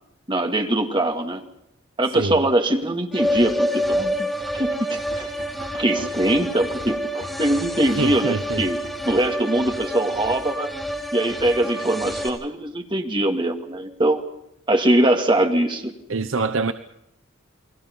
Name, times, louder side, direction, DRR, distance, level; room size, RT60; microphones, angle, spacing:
voice 1, 0.3-1.4 2.0-4.3 4.5-5.3 5.7-8.8 9.0-10.7 11.1-14.2 14.7-15.9, right 1 dB, 25° right, 2.4 m, -22 dB
sound 1, 3.1-12.3, equal, ahead, 4.0 m, -28 dB
sound 2, 5.1-9.2, right 1 dB, 50° right, 4.0 m, -43 dB
voice 2, 8.0-8.6 16.1-16.7, right 3 dB, 70° right, 0.9 m, -24 dB
30.0 x 21.5 x 5.4 m
head